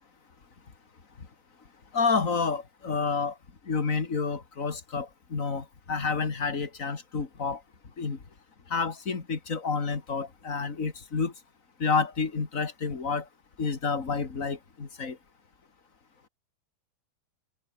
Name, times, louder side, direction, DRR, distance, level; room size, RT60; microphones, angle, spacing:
voice 1, 1.9-3.3 3.7-7.6 8.0-8.2 8.7-11.3 11.8-13.2 13.6-15.2, left 4 dB, 30° left, 1.6 m, -29 dB
omnidirectional pair, 4.8 m